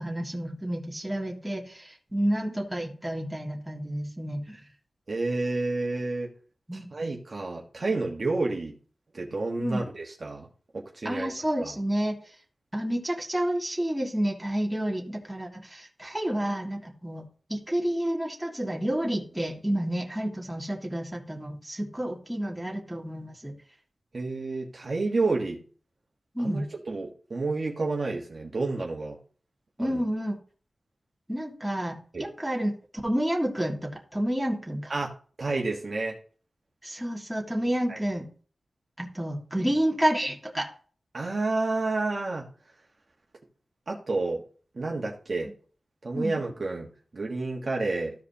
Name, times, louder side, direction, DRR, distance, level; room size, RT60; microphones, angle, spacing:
voice 1, 0.0-4.6 6.7-6.9 9.6-9.8 11.0-12.1 12.7-23.5 26.3-26.7 29.8-30.4 31.3-32.7 33.0-34.9 36.8-38.2 39.0-40.7 46.1-46.4, right 1 dB, 5° right, -1 dB, 1.7 m, -30 dB
voice 2, 5.1-6.3 6.9-8.7 9.1-10.5 10.7-11.3 11.6-11.7 24.1-25.6 26.4-29.2 29.8-30.0 32.1-32.2 34.9-35.1 35.4-36.2 37.9-38.0 41.1-42.5 43.9-44.4 44.7-45.5 46.0-48.1, right 3 dB, 45° right, -1 dB, 1.2 m, -30 dB
14.0 x 4.9 x 2.8 m, 0.42 s
wide cardioid pair, 110°, 0 cm